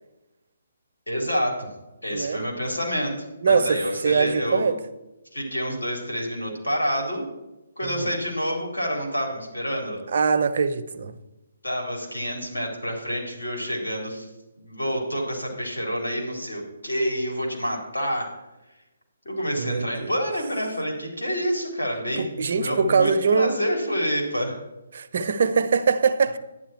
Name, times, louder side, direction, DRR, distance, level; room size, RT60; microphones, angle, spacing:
voice 1, 1.1-1.7 2.0-3.1 3.4-4.7 5.3-7.2 7.8-10.0 11.6-14.3 14.6-18.4 19.2-24.6, equal, 90° left, 4.1 m, -28 dB
voice 2, 2.1-2.4 3.4-4.8 7.8-8.2 10.1-11.1 19.6-20.1 22.2-23.6 24.9-26.4, right 5 dB, 60° right, 0.8 m, -22 dB
11.0 x 10.0 x 4.5 m
figure-of-eight pair, 145°, 0 cm